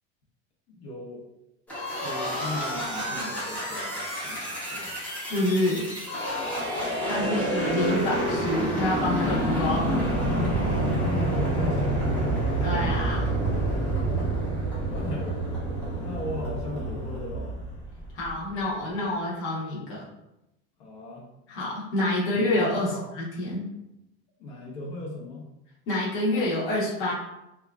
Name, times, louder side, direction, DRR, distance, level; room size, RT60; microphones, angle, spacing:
voice 1, 0.7-1.2 2.0-5.0 7.2-7.6 11.0-12.5 14.8-15.5 16.0-17.5 20.8-21.3 22.2-23.1 24.4-25.4, left 1 dB, 65° left, -3 dB, 0.8 m, -38 dB
sound 1, 1.7-18.3, right 1 dB, 5° left, 0.5 m, -28 dB
voice 2, 5.3-5.8 7.0-10.1 12.6-13.3 18.1-20.1 21.5-23.6 25.9-27.1, left 1 dB, 40° left, -6 dB, 0.8 m, -27 dB
2.9 x 2.3 x 2.3 m, 0.91 s
cardioid pair, 165°, 32 cm